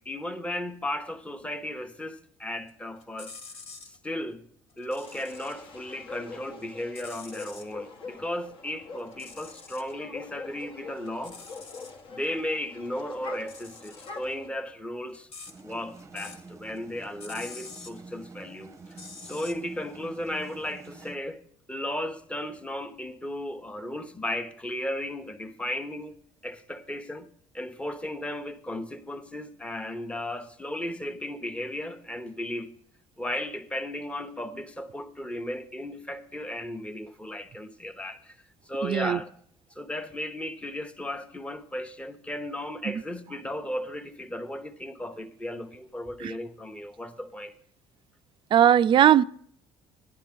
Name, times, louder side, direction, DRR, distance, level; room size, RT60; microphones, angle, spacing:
voice 1, 0.0-3.4 3.8-4.4 4.8-11.4 12.1-15.3 15.6-19.0 19.2-21.4 21.7-26.1 26.4-27.3 27.5-32.7 33.2-38.4 38.7-39.3 39.7-47.5, left 1 dB, 10° left, 1.0 m, -35 dB
sound 1, 2.7-4.0 4.7-5.7 6.0-7.7 9.0-9.9 10.3-12.0 13.3-16.5 16.8-18.0 18.8-19.5, left 4 dB, 65° left, 2.0 m, -47 dB
sound 2, 5.0-14.5, left 4 dB, 50° left, 1.2 m, -44 dB
sound 3, 15.5-21.2, right 3 dB, 25° right, 0.8 m, -47 dB
voice 2, 38.8-39.2 42.8-43.0 46.2-46.3 48.5-49.2, right 10 dB, 45° right, 0.3 m, -19 dB
11.5 x 10.5 x 3.7 m
supercardioid pair, 85°, 12 cm